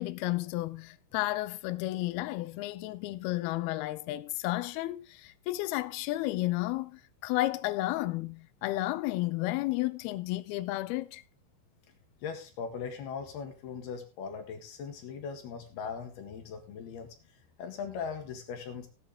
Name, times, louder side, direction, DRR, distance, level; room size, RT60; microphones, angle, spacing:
voice 1, 0.0-11.2, left 17 dB, 85° left, 2.2 m, -32 dB
voice 2, 12.2-18.9, left 6 dB, 65° left, 3.5 m, -40 dB
17.0 x 8.8 x 3.7 m
omnidirectional pair, 5.4 m